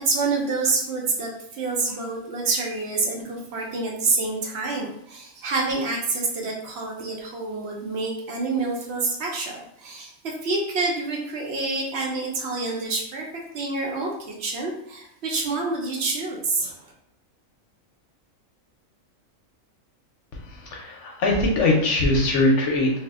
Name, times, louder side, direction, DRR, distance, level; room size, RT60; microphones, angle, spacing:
voice 1, 0.0-16.9, right 3 dB, 60° right, -1 dB, 0.8 m, -27 dB
voice 2, 20.5-22.9, left 2 dB, 65° left, -1 dB, 0.9 m, -21 dB
2.6 x 2.0 x 3.4 m, 0.72 s
omnidirectional pair, 1.4 m